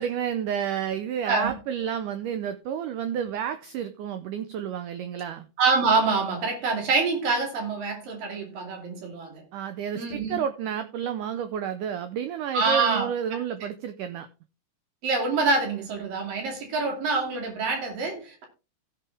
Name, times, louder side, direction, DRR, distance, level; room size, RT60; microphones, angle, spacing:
voice 1, 0.0-5.5 9.5-14.3, right 8 dB, 90° right, 1.8 m, -30 dB
voice 2, 5.6-9.4 10.0-10.4 12.5-13.1 15.0-18.5, right 4 dB, 60° right, 4.0 m, -26 dB
16.0 x 6.1 x 3.4 m
omnidirectional pair, 4.6 m